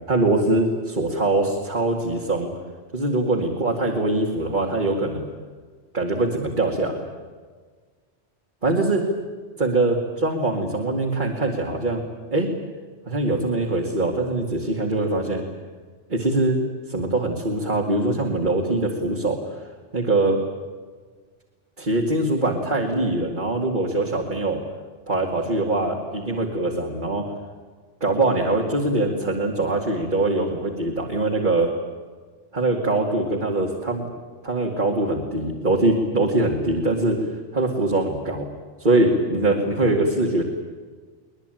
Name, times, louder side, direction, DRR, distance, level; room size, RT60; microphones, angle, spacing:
voice 1, 0.1-2.5 2.9-5.3 5.9-7.1 8.6-9.0 9.6-12.0 12.3-12.5 13.1-15.4 16.1-16.6 16.9-19.6 19.9-20.4 21.8-24.6 25.1-27.3 28.0-31.7 32.5-34.1 34.4-37.2 37.5-38.5 38.8-40.4, right 2 dB, 40° right, 0 dB, 2.5 m, -23 dB
23.0 x 20.5 x 9.2 m, 1.5 s
omnidirectional pair, 1.2 m